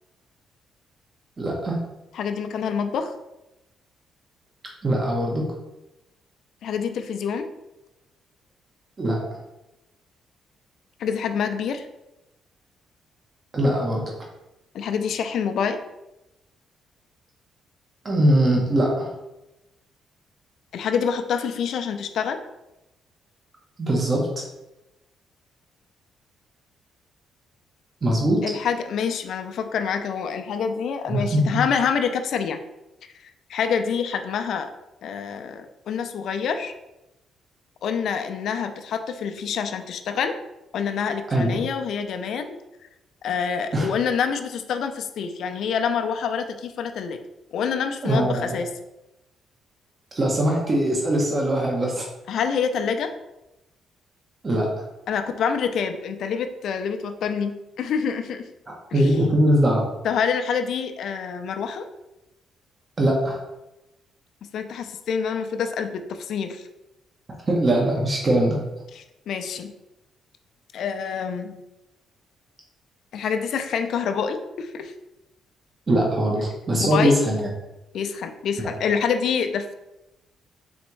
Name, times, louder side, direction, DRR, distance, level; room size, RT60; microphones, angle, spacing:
voice 1, 1.4-1.8 4.8-5.5 9.0-9.2 13.5-14.1 18.0-19.1 23.8-24.4 28.0-28.4 31.1-31.6 41.3-41.6 43.7-43.9 48.0-48.6 50.1-52.1 54.4-54.8 58.9-59.9 63.0-63.4 67.3-68.6 75.9-77.5, right 1 dB, 35° right, -2 dB, 1.0 m, -21 dB
voice 2, 2.1-3.1 6.6-7.5 11.0-11.9 14.7-15.8 20.7-22.4 28.4-32.6 33.2-34.7 35.0-36.7 37.8-40.4 40.7-42.6 43.2-47.2 47.5-48.7 52.3-53.1 55.1-58.5 58.9-59.1 60.0-61.9 64.5-66.7 68.9-69.7 70.7-71.6 73.1-74.9 76.8-77.2 77.9-79.7, left 6 dB, 70° left, 7 dB, 0.4 m, -26 dB
4.2 x 3.5 x 3.1 m, 0.94 s
cardioid pair, 90°, 0 cm